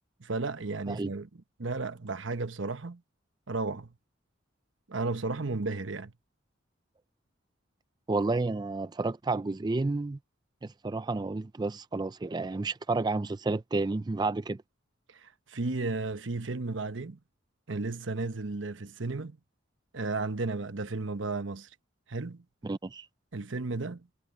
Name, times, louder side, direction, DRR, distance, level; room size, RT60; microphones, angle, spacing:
voice 1, 0.2-1.3 1.6-3.0 3.5-3.9 4.9-6.1 15.1-17.2 17.7-19.4 19.9-21.7 22.1-22.4 23.3-24.1, right 3 dB, 75° right, 1.1 m, -34 dB
voice 2, 8.1-10.2 10.6-14.6 22.6-23.1, right 3 dB, 20° right, 0.4 m, -31 dB
head